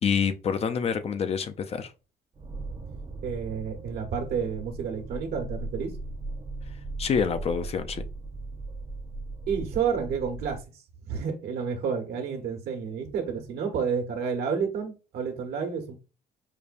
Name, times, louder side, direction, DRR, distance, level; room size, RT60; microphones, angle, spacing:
voice 1, 0.0-1.9 7.0-8.1, left 6 dB, 35° left, 0.4 m, -27 dB
sound 1, 2.3-10.6, right 2 dB, 30° right, 0.7 m, -38 dB
voice 2, 3.2-5.9 9.5-10.6 11.0-15.9, right 6 dB, 70° right, 1.1 m, -30 dB
5.0 x 2.2 x 2.5 m
cardioid pair, 110°, 17 cm